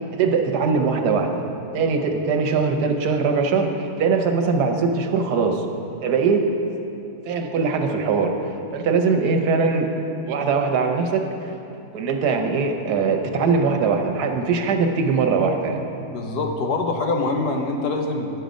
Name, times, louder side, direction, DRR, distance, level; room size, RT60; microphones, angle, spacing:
voice 1, 0.2-1.4 1.7-5.6 6.0-6.5 7.2-8.4 8.7-9.9 10.3-11.3 11.9-15.8, right 5 dB, 85° right, 4 dB, 1.3 m, -21 dB
voice 2, 16.0-18.3, left 3 dB, 85° left, 3 dB, 1.4 m, -24 dB
10.0 x 6.8 x 5.1 m, 2.8 s
omnidirectional pair, 1.7 m